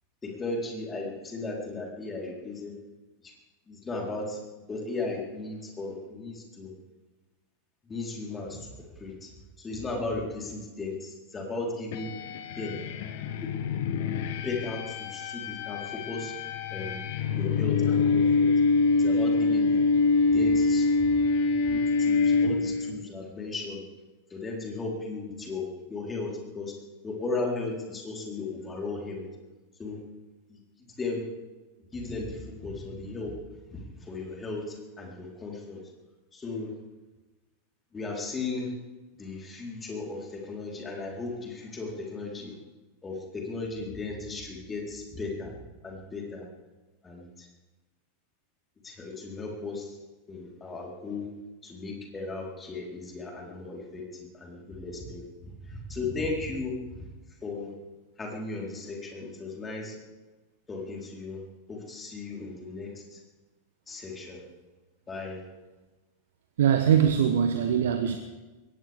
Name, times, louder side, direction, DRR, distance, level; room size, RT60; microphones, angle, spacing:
voice 1, 0.2-2.7 3.2-3.3 3.7-4.4 4.7-6.7 7.8-9.3 9.6-12.1 12.6-12.8 13.4-13.5 14.4-16.3 16.7-17.0 17.3-18.5 18.9-19.8 20.3-21.1 21.7-23.8 24.3-26.7 27.0-29.2 29.8-30.0 30.5-31.2 31.9-33.4 33.7-35.8 36.3-36.7 37.9-38.7 39.2-42.6 43.0-45.6 45.8-46.5 47.0-47.5 48.8-50.0 50.3-51.3 51.6-57.0 57.4-57.7 58.2-60.0 60.7-61.4 61.7-63.2 63.9-64.4 65.1-65.4, left 3 dB, 15° left, 4.1 m, -36 dB
sound 1, 11.9-23.0, left 4 dB, 50° left, 1.1 m, -25 dB
voice 2, 66.6-68.2, right 8 dB, 60° right, 1.0 m, -22 dB
21.5 x 18.0 x 3.6 m
figure-of-eight pair, 90°, 0 cm